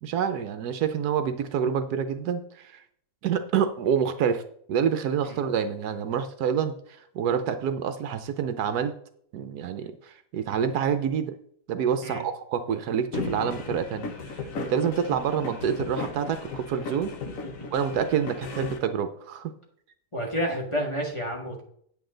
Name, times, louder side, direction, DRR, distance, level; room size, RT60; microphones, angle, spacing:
voice 1, 0.0-2.8 3.2-4.4 4.7-6.7 7.1-8.9 9.3-11.3 11.7-14.1 14.6-17.1 17.7-19.5, right 7 dB, 75° right, 10 dB, 1.2 m, -27 dB
sound 1, 13.1-18.8, left 4 dB, 55° left, 1.3 m, -36 dB
voice 2, 20.1-21.6, equal, 20° left, -1 dB, 1.8 m, -30 dB
9.3 x 8.2 x 3.9 m, 0.65 s
omnidirectional pair, 1.8 m